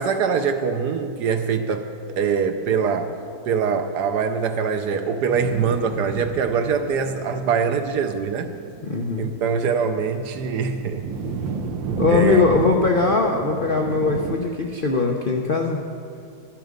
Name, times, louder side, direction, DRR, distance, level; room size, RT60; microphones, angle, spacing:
voice 1, 0.0-1.9 2.2-3.2 3.5-8.5 9.2-11.1 12.1-12.4, right 6 dB, 70° right, 8 dB, 1.1 m, -23 dB
sound 1, 5.3-14.4, right 5 dB, 90° right, 1.5 m, -32 dB
voice 2, 8.8-9.3 12.0-15.8, left 4 dB, 75° left, 1 dB, 0.4 m, -20 dB
12.5 x 12.0 x 5.2 m, 2.4 s
omnidirectional pair, 2.0 m